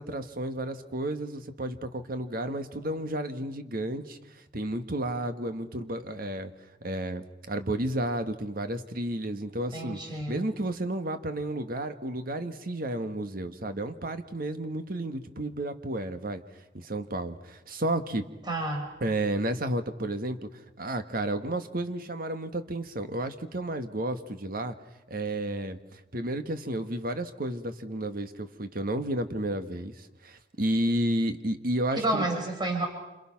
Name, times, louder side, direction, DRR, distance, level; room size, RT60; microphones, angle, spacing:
voice 1, 0.0-4.2 4.5-6.5 6.8-10.0 10.3-16.4 16.7-18.2 19.0-24.7 25.1-32.3, right 1 dB, 55° right, 8 dB, 1.6 m, -32 dB
voice 2, 9.7-10.5 18.5-18.9 31.9-32.9, right 2 dB, 25° right, 2 dB, 4.8 m, -30 dB
28.5 x 27.0 x 5.9 m, 0.99 s
head